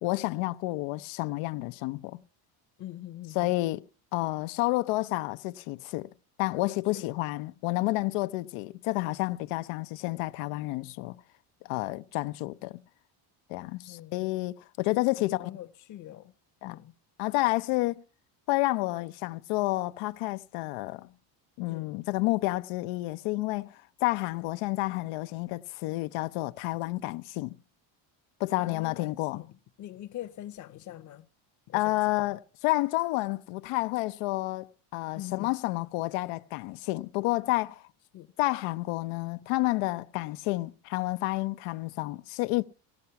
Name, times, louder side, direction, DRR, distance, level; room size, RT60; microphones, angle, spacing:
voice 1, 0.0-2.2 3.3-6.1 6.4-11.2 11.6-12.8 13.5-15.5 16.6-16.8 17.2-18.0 18.5-21.1 21.6-27.6 28.4-29.4 31.7-37.9 38.4-42.7, left 20 dB, 90° left, 0.7 m, -30 dB
voice 2, 2.8-3.5 6.9-7.1 13.9-14.1 15.2-16.3 16.6-16.9 21.7-21.9 24.4-24.5 28.6-29.5 29.8-31.3 31.7-31.8 32.2-32.3 35.1-35.5 38.1-38.3, left 13 dB, 35° left, 0.7 m, -43 dB
17.5 x 14.0 x 5.8 m
cardioid pair, 150°, 50 cm